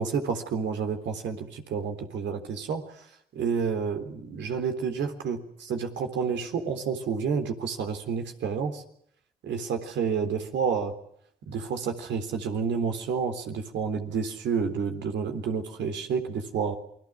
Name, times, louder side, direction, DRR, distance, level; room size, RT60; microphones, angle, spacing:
voice 1, 0.0-3.0 3.3-8.8 9.4-10.9 11.5-16.7, right 6 dB, 75° right, 5 dB, 3.7 m, -29 dB
28.5 x 22.0 x 6.3 m, 0.72 s
supercardioid pair, 50°, 19 cm